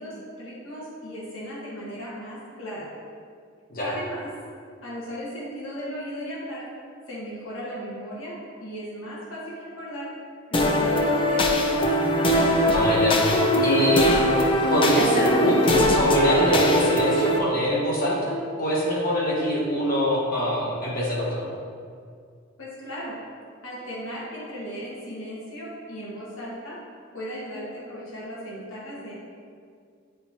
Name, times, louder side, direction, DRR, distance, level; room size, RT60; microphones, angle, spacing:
voice 1, 0.0-2.9 3.8-4.3 4.8-6.7 7.1-10.1 10.5-11.9 22.6-23.2 23.6-26.8 27.1-29.1, equal, 80° left, -7 dB, 1.5 m, -36 dB
sound 1, 10.5-17.4, equal, 25° left, 0.4 m, -21 dB
voice 2, 12.7-13.2 13.6-21.5, equal, 45° left, -5 dB, 1.4 m, -24 dB
8.3 x 4.4 x 2.9 m, 2.2 s
head